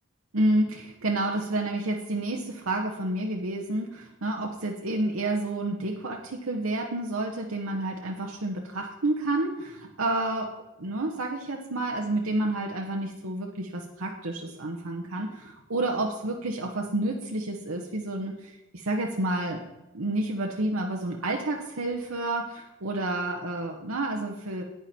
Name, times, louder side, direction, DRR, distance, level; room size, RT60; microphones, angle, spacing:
voice 1, 0.3-10.5 10.8-19.6 19.9-24.6, right 2 dB, 85° right, 1 dB, 1.1 m, -29 dB
9.8 x 9.2 x 4.3 m, 0.96 s
head